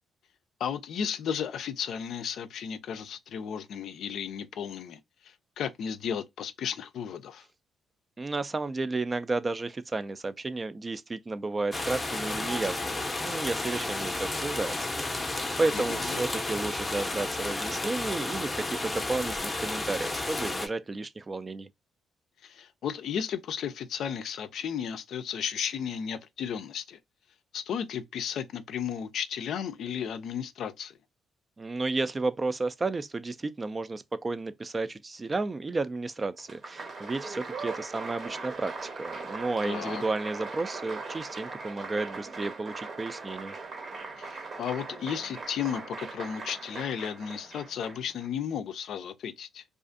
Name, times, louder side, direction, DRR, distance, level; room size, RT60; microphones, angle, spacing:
voice 1, 0.6-7.4 15.7-16.2 22.4-27.0 27.5-31.0 39.6-40.0 44.2-49.6, left 8 dB, 70° left, 0.4 m, -34 dB
voice 2, 8.2-21.7 31.6-43.5, right 3 dB, 25° right, 0.3 m, -32 dB
sound 1, 11.7-20.7, left 2 dB, 20° left, 0.6 m, -32 dB
Applause, 36.4-48.3, right 3 dB, 50° right, 0.8 m, -40 dB
2.4 x 2.4 x 2.5 m
cardioid pair, 90°, 0 cm